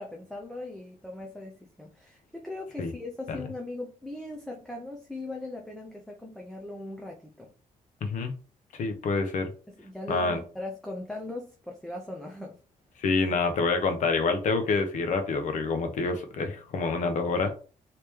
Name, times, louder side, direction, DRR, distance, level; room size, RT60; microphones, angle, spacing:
voice 1, 0.0-7.5 9.7-12.6, left 2 dB, 5° left, 0.4 m, -39 dB
voice 2, 8.0-8.3 8.7-9.5 10.1-10.4 13.0-17.5, left 4 dB, 65° left, 0.8 m, -27 dB
3.1 x 2.9 x 3.4 m
wide cardioid pair, 165°, 14 cm